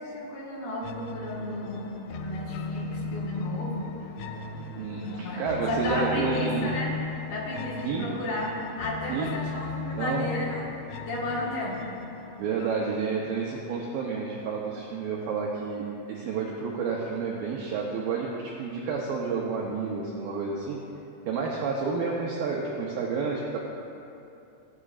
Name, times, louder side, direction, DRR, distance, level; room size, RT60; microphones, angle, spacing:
voice 1, 0.0-4.1 5.1-6.9 7.3-10.7 11.1-11.8, left 1 dB, 65° left, -4 dB, 3.1 m, -33 dB
sound 1, 0.8-13.8, left 4 dB, 85° left, 2.7 m, -37 dB
voice 2, 4.8-6.7 7.8-8.1 9.1-9.3 10.0-10.4 12.4-18.3 18.6-20.8 21.3-23.6, right 5 dB, 85° right, -2 dB, 2.0 m, -30 dB
16.0 x 10.0 x 2.4 m, 2.8 s
omnidirectional pair, 5.0 m